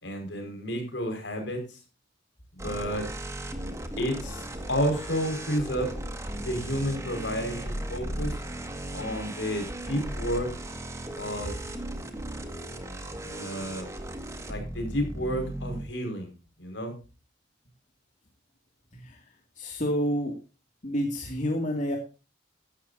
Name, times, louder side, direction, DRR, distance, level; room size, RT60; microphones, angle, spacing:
voice 1, 0.0-1.8 2.5-3.1 4.0-6.0 6.3-8.3 8.9-10.5 11.2-11.5 13.2-13.9 14.5-16.3 16.6-17.0, equal, 70° left, 4 dB, 5.3 m, -31 dB
sound 1, 2.6-15.8, right 1 dB, 15° right, 1.9 m, -36 dB
voice 2, 18.9-20.4 20.8-22.0, equal, 40° left, 1 dB, 2.4 m, -29 dB
15.5 x 12.5 x 2.7 m, 0.31 s
head